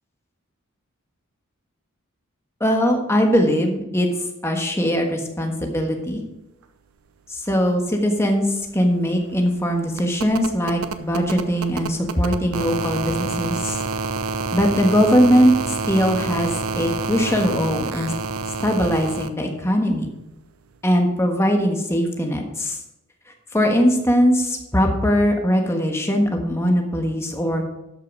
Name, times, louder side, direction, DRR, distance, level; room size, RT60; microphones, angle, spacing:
voice 1, 2.6-4.1 4.4-6.2 7.3-8.5 8.7-13.8 14.5-15.5 15.9-18.1 18.6-20.1 20.8-22.8 23.5-27.6, equal, 15° left, 2 dB, 1.4 m, -20 dB
sound 1, 8.1-8.2 8.4-19.3 20.7-20.8, right 4 dB, 85° right, 0.7 m, -28 dB
12.5 x 5.7 x 4.9 m, 0.92 s
head